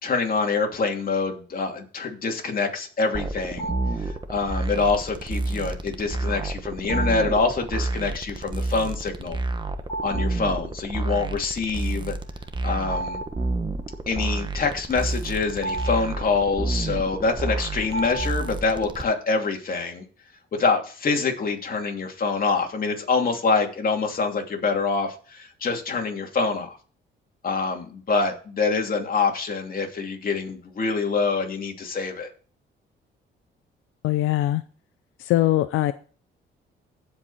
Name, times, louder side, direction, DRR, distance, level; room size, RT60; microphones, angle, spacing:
voice 1, 0.0-3.7 4.3-9.4 10.0-12.2 12.6-13.2 14.1-20.0 20.5-26.8 27.4-32.3, left 4 dB, 45° left, 2 dB, 2.8 m, -25 dB
sound 1, 3.1-19.0, right 2 dB, 25° right, 1.2 m, -30 dB
sound 2, 3.6-4.2 6.9-7.5 9.8-10.5 10.9-11.0 12.4-14.0 14.9-18.8, right 2 dB, 20° left, 3.1 m, -35 dB
voice 2, 34.0-34.6 35.2-35.9, left 15 dB, 90° left, 12 dB, 0.5 m, -21 dB
16.0 x 5.3 x 4.2 m, 0.40 s
cardioid pair, 90°, 20 cm